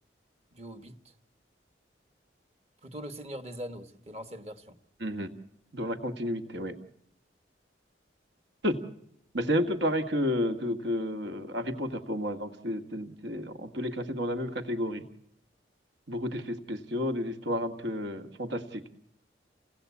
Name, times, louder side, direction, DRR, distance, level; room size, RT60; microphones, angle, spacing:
voice 1, 0.5-1.1 2.8-4.8, equal, 35° right, 9 dB, 1.5 m, -42 dB
voice 2, 5.7-6.8 8.6-8.8 9.3-15.0 16.1-18.8, equal, 70° right, 8 dB, 1.8 m, -31 dB
28.5 x 17.5 x 8.4 m, 0.73 s
head